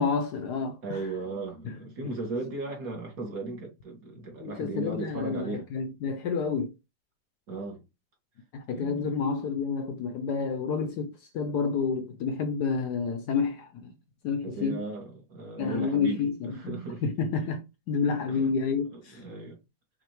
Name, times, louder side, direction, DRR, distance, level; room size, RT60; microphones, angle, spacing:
voice 1, 0.0-1.0 1.7-1.8 4.4-6.7 8.5-13.9 14.2-14.8 15.6-19.2, left 5 dB, 70° left, 1.0 m, -29 dB
voice 2, 0.8-5.7 7.5-7.8 8.7-9.2 14.4-17.1 18.3-18.5 18.9-19.6, right 3 dB, 50° right, 1.9 m, -36 dB
6.0 x 2.8 x 3.1 m
omnidirectional pair, 2.1 m